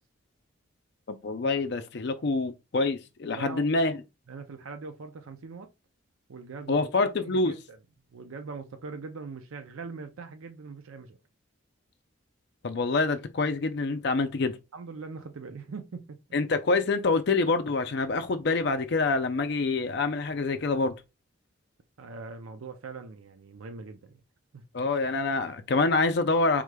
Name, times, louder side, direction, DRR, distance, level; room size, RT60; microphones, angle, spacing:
voice 1, 1.1-4.0 6.7-7.5 12.6-14.6 16.3-20.9 24.7-26.6, left 3 dB, 55° left, 0.4 m, -26 dB
voice 2, 3.3-3.6 4.3-5.7 6.3-6.9 7.2-7.8 8.1-11.2 14.7-16.2 22.0-24.2 24.5-24.6, right 4 dB, 85° right, 0.5 m, -41 dB
4.8 x 3.6 x 2.2 m
head